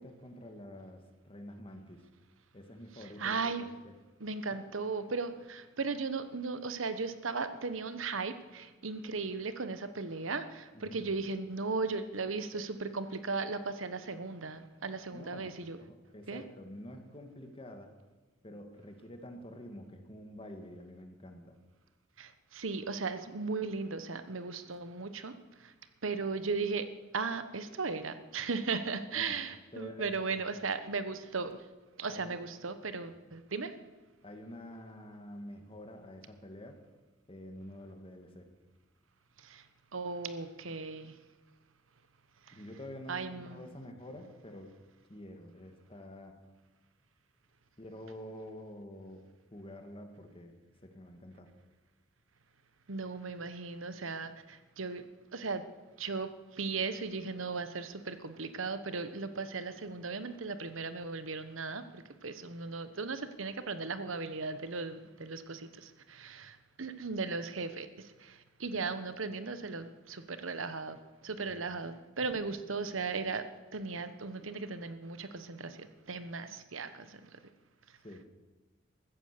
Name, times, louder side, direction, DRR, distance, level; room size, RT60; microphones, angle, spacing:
voice 1, 0.0-2.0 2.5-3.9 4.5-4.6 10.7-11.0 15.1-15.5 15.8-17.9 18.4-21.5 29.1-29.4 29.7-30.4 32.1-32.4 33.1-33.2 34.2-36.8 37.3-38.5 42.5-44.7 45.1-46.4 47.8-49.2 49.5-50.5 50.8-51.5 71.5-71.7 78.0-78.2, left 1 dB, 30° left, 5 dB, 1.9 m, -48 dB
voice 2, 3.2-3.7 4.2-15.8 16.3-16.4 22.2-25.3 26.0-26.8 27.1-31.6 32.0-33.7 39.4-39.6 39.9-41.1 43.1-43.6 52.9-55.0 55.3-55.6 56.0-67.9 68.2-71.0 71.2-73.4 73.7-77.4, right 4 dB, 85° right, 11 dB, 1.2 m, -37 dB
14.5 x 14.5 x 6.8 m, 1.2 s
head